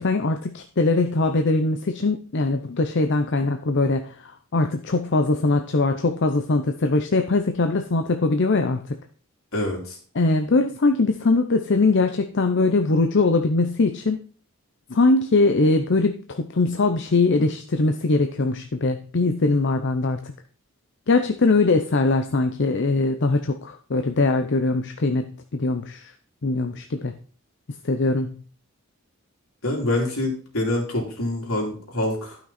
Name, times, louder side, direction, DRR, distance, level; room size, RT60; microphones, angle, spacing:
voice 1, 0.0-9.0 10.1-14.2 14.9-20.3 21.1-26.1 26.4-27.1 27.8-28.4, left 3 dB, 55° left, 6 dB, 0.7 m, -21 dB
voice 2, 9.5-10.0 29.6-32.4, left 1 dB, 75° left, 0 dB, 3.4 m, -26 dB
12.5 x 6.0 x 4.2 m, 0.43 s
head